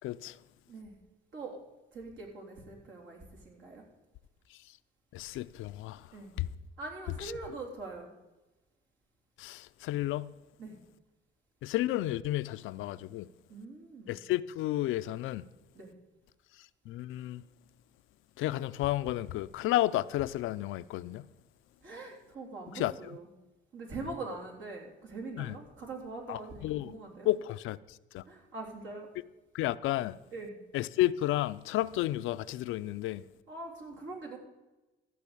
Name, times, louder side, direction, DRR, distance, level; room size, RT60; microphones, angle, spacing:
voice 1, 0.0-0.4 5.1-6.1 6.4-6.5 7.2-7.3 9.4-10.3 11.6-13.3 14.1-15.5 16.9-17.4 18.4-21.3 22.7-22.9 25.4-25.6 26.3-26.9 27.2-28.2 29.5-30.2 30.7-33.2, left 15 dB, 90° left, 0.5 m, -32 dB
voice 2, 1.9-3.8 6.1-6.4 6.8-8.1 10.6-10.8 13.5-14.2 15.8-15.9 21.8-23.3 23.7-27.3 28.3-29.1 30.3-30.6 33.5-34.4, right 3 dB, 70° right, 3.6 m, -43 dB
14.5 x 5.4 x 8.4 m
cardioid pair, 90°, 20 cm